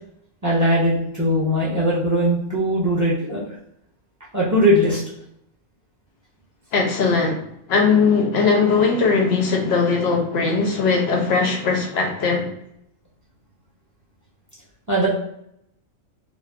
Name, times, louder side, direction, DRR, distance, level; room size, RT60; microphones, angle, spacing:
voice 1, 0.4-3.4 4.3-5.0 14.9-15.1, equal, 15° right, -6 dB, 0.8 m, -19 dB
voice 2, 6.7-7.4 7.7-12.5, left 4 dB, 60° left, 1 dB, 0.8 m, -19 dB
2.3 x 2.3 x 3.5 m, 0.74 s
omnidirectional pair, 1.4 m